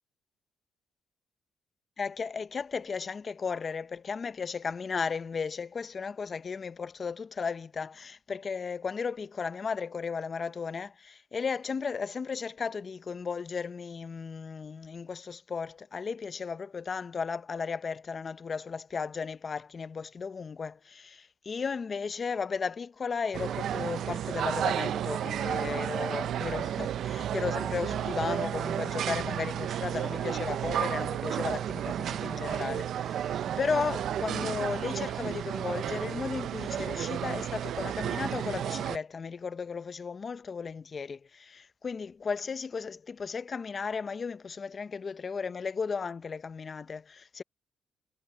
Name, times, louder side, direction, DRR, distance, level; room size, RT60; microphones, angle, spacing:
voice 1, 2.0-47.4, left 5 dB, 40° left, 0.8 m, -35 dB
sound 1, 23.3-39.0, right 10 dB, 70° right, 0.6 m, -32 dB
cardioid pair, 90°, 0 cm